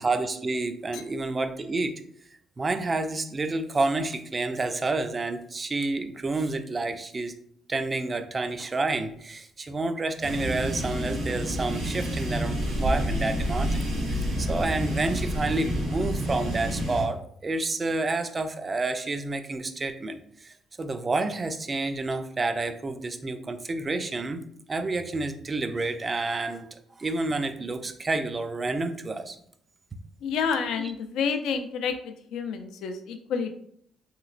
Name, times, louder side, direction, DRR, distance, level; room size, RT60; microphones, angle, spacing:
voice 1, 0.0-1.9 2.6-7.3 7.7-13.8 14.1-24.4 24.7-29.4 30.8-30.9, right 3 dB, 30° right, 8 dB, 0.3 m, -29 dB
sound 1, 10.2-17.0, equal, 85° right, 1.0 m, -28 dB
voice 2, 30.2-33.5, left 6 dB, 85° left, 7 dB, 0.3 m, -29 dB
3.0 x 3.0 x 2.4 m, 0.65 s
cardioid pair, 90°, 0 cm